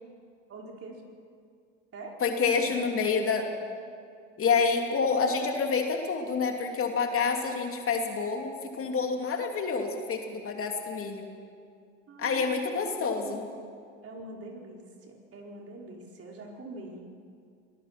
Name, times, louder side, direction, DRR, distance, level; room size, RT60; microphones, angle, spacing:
voice 1, 0.5-1.0 1.9-2.2 2.5-3.5 12.1-12.9 13.1-13.8 14.0-17.1, right 2 dB, 40° right, 0 dB, 4.7 m, -44 dB
voice 2, 2.2-3.5 4.4-11.3 12.2-13.5, left 5 dB, 35° left, 3 dB, 2.9 m, -28 dB
26.5 x 19.0 x 6.0 m, 2.3 s
hypercardioid pair, 75°, 36 cm